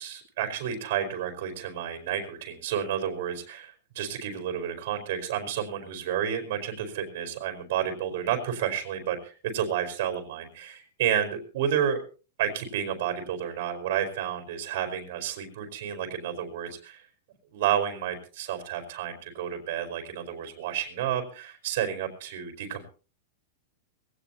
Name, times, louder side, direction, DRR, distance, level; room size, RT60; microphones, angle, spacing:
voice 1, 0.0-12.0 12.4-17.1 17.5-22.9, right 9 dB, 60° right, 3 dB, 4.5 m, -31 dB
21.5 x 17.5 x 2.9 m, 0.36 s
supercardioid pair, 155°, 0 cm